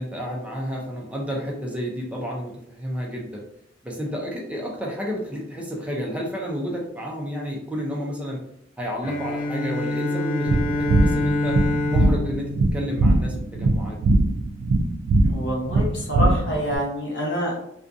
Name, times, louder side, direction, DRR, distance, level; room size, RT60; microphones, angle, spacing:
voice 1, 0.0-3.4 3.8-8.4 8.8-11.6 11.9-14.0, equal, 5° right, -2 dB, 0.4 m, -31 dB
Bowed string instrument, 9.0-13.7, left 2 dB, 45° left, 0.5 m, -27 dB
sound 1, 10.5-16.8, right 2 dB, 70° right, 0.3 m, -21 dB
voice 2, 15.2-17.6, equal, 70° left, -3 dB, 0.9 m, -27 dB
2.5 x 2.3 x 2.5 m, 0.73 s
head